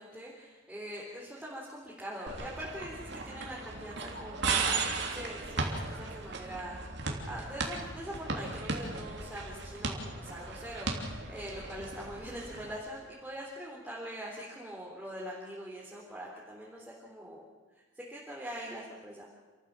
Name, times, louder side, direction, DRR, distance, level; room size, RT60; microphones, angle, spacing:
voice 1, 0.0-6.9 7.3-17.4 17.7-19.3, equal, 5° right, -5 dB, 3.6 m, -43 dB
sound 1, 2.3-12.8, right 3 dB, 65° right, 3.3 m, -36 dB
29.0 x 14.5 x 7.6 m, 1.3 s
head